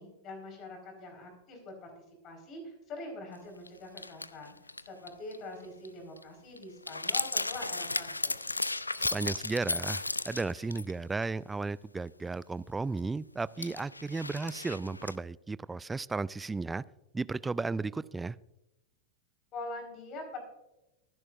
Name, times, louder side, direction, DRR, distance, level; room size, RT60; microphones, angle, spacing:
voice 1, 0.0-1.9 2.2-4.5 4.8-8.4 19.5-20.4, left 2 dB, 35° left, 3 dB, 4.5 m, -44 dB
sound 1, 3.7-3.8 4.0-5.4 5.6-5.9 6.2-6.3 6.6-10.9 11.2-11.3 13.0-13.1 13.6-15.2, left 2 dB, 80° left, 0.4 m, -34 dB
voice 2, 9.0-16.8 17.1-18.4, right 3 dB, 10° right, 20 dB, 0.3 m, -34 dB
23.0 x 10.5 x 2.5 m, 0.94 s
figure-of-eight pair, 90°, 0 cm